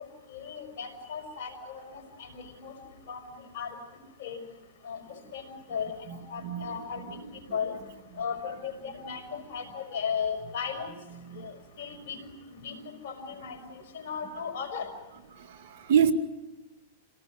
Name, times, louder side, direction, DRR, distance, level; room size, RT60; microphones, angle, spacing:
voice 1, 0.0-2.7 3.1-3.2 3.5-3.8 4.2-4.4 4.8-7.8 8.2-10.9 11.4-14.9, left 6 dB, 65° left, 5.6 m, -36 dB
voice 2, 15.5-16.1, right 8 dB, 60° right, 2.0 m, -25 dB
27.5 x 18.5 x 9.5 m
hypercardioid pair, 125°, 0 cm